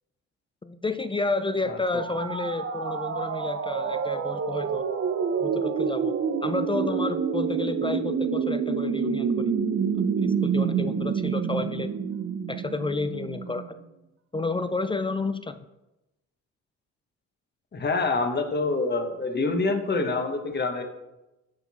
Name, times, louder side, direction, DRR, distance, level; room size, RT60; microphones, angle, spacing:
voice 1, 0.6-4.8 5.4-6.1 6.4-9.5 10.2-11.9 12.5-13.8 14.3-15.6, left 3 dB, 15° left, 11 dB, 0.3 m, -30 dB
sound 1, 1.9-13.7, right 6 dB, 45° right, 0.8 m, -28 dB
voice 2, 17.7-20.8, left 3 dB, 35° left, 6 dB, 1.2 m, -26 dB
10.5 x 4.4 x 4.2 m, 0.98 s
cardioid pair, 90°, 30 cm